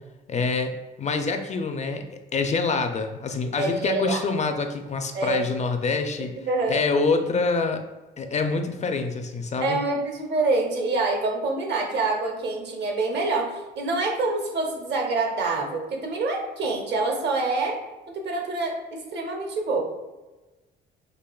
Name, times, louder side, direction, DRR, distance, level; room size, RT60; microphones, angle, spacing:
voice 1, 0.3-0.7 1.0-6.4 6.7-7.8 8.2-9.8, left 4 dB, 35° left, 6 dB, 0.4 m, -26 dB
voice 2, 3.6-4.2 5.1-5.4 6.5-6.8 9.6-17.8 18.1-19.8, right 3 dB, 60° right, 1 dB, 0.9 m, -26 dB
5.1 x 2.5 x 2.3 m, 1.1 s
cardioid pair, 90°, 20 cm